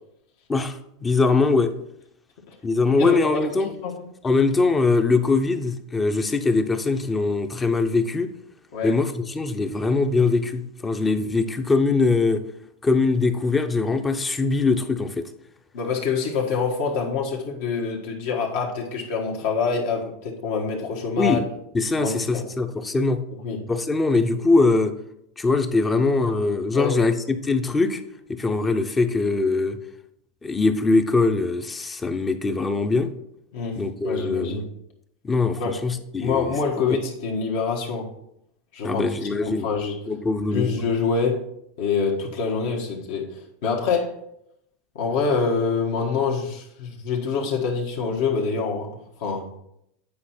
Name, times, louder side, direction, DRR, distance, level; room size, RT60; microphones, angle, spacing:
voice 1, 0.5-1.7 2.6-3.7 4.2-8.3 8.8-12.4 12.8-15.2 21.2-21.4 21.7-23.2 23.7-24.9 25.4-28.0 28.3-29.8 30.4-33.1 33.8-34.6 35.2-36.5 36.9-37.0 38.8-39.7 40.1-40.7, left 3 dB, 15° left, 9 dB, 0.6 m, -22 dB
voice 2, 2.9-4.0 8.7-9.0 15.7-21.4 22.0-22.4 23.4-23.6 26.7-27.0 33.5-34.7 35.6-35.8 36.2-38.1 38.7-40.0 40.5-41.5 41.8-44.2 44.9-48.9 49.2-49.5, left 5 dB, 70° left, -2 dB, 1.4 m, -26 dB
8.5 x 4.7 x 4.3 m, 0.78 s
supercardioid pair, 135°, 0 cm